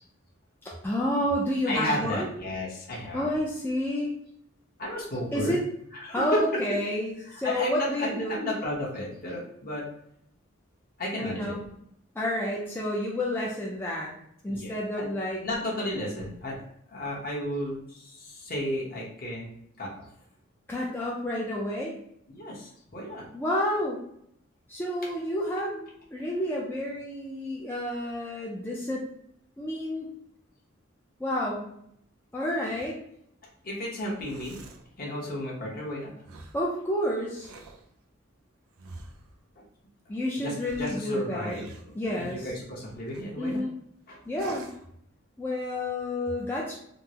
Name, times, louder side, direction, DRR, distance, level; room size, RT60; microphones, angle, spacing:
voice 1, 0.6-2.3 3.1-4.1 5.3-5.6 6.1-8.3 11.2-11.6 12.2-14.1 14.4-15.4 20.7-22.0 23.3-24.0 24.7-29.1 29.6-30.1 31.2-31.7 32.3-33.0 36.5-37.5 40.1-41.6 42.0-42.5 43.4-43.7 44.3-44.7 45.4-46.8, left 1 dB, 10° left, -5 dB, 0.4 m, -30 dB
voice 2, 1.7-3.3 4.8-5.6 5.9-6.4 7.2-9.9 11.0-11.5 14.5-15.1 15.4-16.6 16.9-20.1 22.3-23.3 33.6-34.6 35.0-36.1 39.6-39.7 40.4-41.6 42.0-43.6 44.1-44.2, left 1 dB, 45° left, -4 dB, 1.0 m, -33 dB
sound 1, 34.1-34.9 36.2-36.6 37.3-37.9 38.8-39.4 40.5-42.5 43.1-43.6 44.3-44.9, right 2 dB, 90° right, 0.5 m, -47 dB
3.7 x 2.0 x 2.8 m, 0.72 s
head